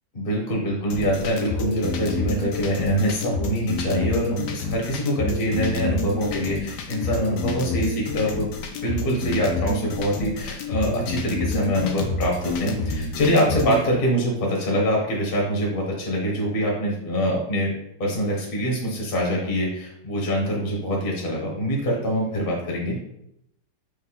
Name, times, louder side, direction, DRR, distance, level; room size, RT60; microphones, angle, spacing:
voice 1, 0.1-8.5 8.8-17.7 18.0-23.0, equal, 35° left, -2 dB, 1.0 m, -24 dB
sound 1, 0.9-13.8, left 3 dB, 75° left, 1.2 m, -29 dB
4.8 x 2.6 x 3.9 m, 0.78 s
omnidirectional pair, 1.9 m